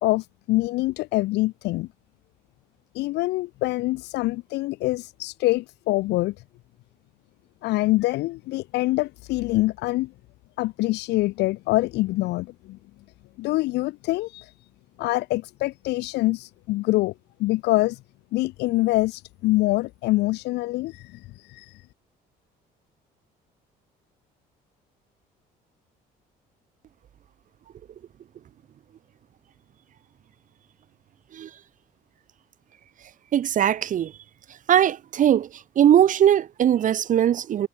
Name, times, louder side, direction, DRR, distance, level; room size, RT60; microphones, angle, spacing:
voice 1, 0.0-1.9 2.9-6.3 7.6-10.1 10.6-12.8 13.4-14.5 15.0-17.1 17.4-18.0 18.3-21.2 21.5-21.7, left 19 dB, 85° left, 1.9 m, -25 dB
voice 2, 33.3-34.1 34.7-35.5 35.8-37.7, right 10 dB, 50° right, 1.1 m, -20 dB
cardioid pair, 110°, 17 cm